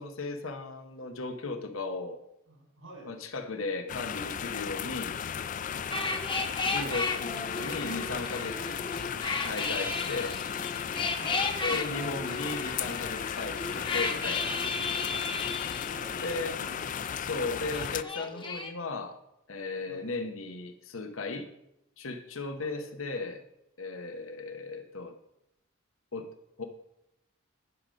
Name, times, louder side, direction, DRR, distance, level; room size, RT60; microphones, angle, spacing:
voice 1, 0.0-2.2 3.0-5.2 6.6-8.9 9.4-10.4 11.6-14.6 16.2-16.6 17.2-19.2 19.5-21.5 22.0-23.4 23.8-25.1 26.1-26.3 26.6-26.7, left 3 dB, 80° left, 6 dB, 1.1 m, -36 dB
voice 2, 2.5-3.1 5.8-6.2 11.1-12.2 15.9-16.1 16.5-17.5 19.9-20.1 22.6-22.8, right 2 dB, 90° right, 0 dB, 5.0 m, -49 dB
sound 1, 3.9-18.0, left 8 dB, 40° left, 0.3 m, -35 dB
sound 2, 5.9-17.1 17.4-18.7, left 4 dB, 25° left, 0.8 m, -34 dB
11.0 x 5.2 x 7.7 m, 0.82 s
head